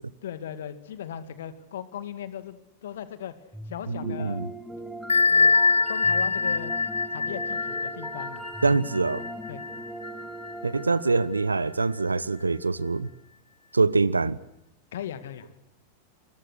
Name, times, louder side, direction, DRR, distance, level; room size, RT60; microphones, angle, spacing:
voice 1, 0.2-3.3 3.7-4.4 5.3-5.5 5.9-6.7 7.1-8.8 9.5-9.8 14.9-15.6, left 9 dB, 60° left, 12 dB, 2.2 m, -38 dB
sound 1, 3.5-12.7, right 1 dB, 5° right, 3.9 m, -40 dB
voice 2, 3.9-4.5 8.6-9.2 10.6-13.1 13.7-14.4, right 3 dB, 80° right, 20 dB, 1.0 m, -24 dB
Bell, 5.1-10.5, left 4 dB, 75° left, 0.9 m, -24 dB
28.0 x 22.5 x 6.4 m, 0.87 s
figure-of-eight pair, 90°, 0 cm